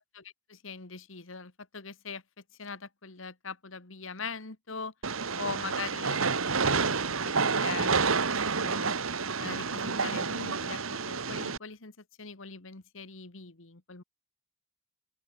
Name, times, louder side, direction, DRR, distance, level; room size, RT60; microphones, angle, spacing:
voice 1, 0.1-2.2 2.6-4.9 5.3-9.0 9.4-11.9 12.2-14.0, left 4 dB, 70° left, 1.9 m, -42 dB
Train, 5.0-11.6, right 4 dB, 80° right, 1.7 m, -29 dB
open air
head